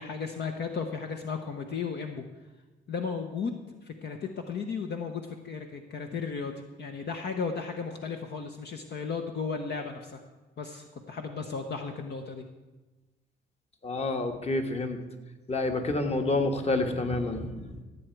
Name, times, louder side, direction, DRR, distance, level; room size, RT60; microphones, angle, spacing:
voice 1, 0.0-2.2 2.9-10.2 10.6-12.4, left 5 dB, 60° left, 4 dB, 1.0 m, -35 dB
voice 2, 13.8-15.0 15.5-17.8, left 2 dB, 30° left, 5 dB, 1.5 m, -28 dB
16.0 x 7.8 x 4.6 m, 1.2 s
cardioid pair, 90°, 20 cm